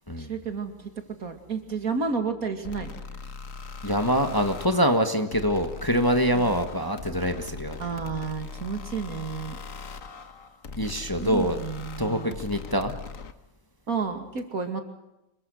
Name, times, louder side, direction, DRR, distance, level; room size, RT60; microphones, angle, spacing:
voice 1, 0.2-0.7 1.2-3.0 6.3-6.5 7.8-9.6 11.2-12.3 13.9-14.8, right 5 dB, 70° right, 6 dB, 2.9 m, -31 dB
Metalic Slam, 2.6-13.3, left 4 dB, 60° left, 1.7 m, -40 dB
voice 2, 3.8-7.8 10.8-11.6 12.0-12.9, equal, 15° left, 6 dB, 1.5 m, -25 dB
26.5 x 23.0 x 6.4 m, 0.91 s
omnidirectional pair, 1.6 m